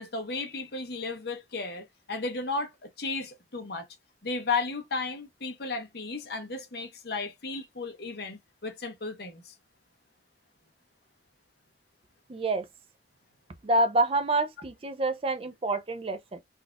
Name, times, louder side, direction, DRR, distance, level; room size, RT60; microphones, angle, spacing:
voice 1, 0.0-3.9 4.2-9.5, left 3 dB, 55° left, 0.8 m, -34 dB
voice 2, 12.3-12.7 13.6-16.4, right 2 dB, 30° right, 0.4 m, -27 dB
4.0 x 2.4 x 2.2 m
head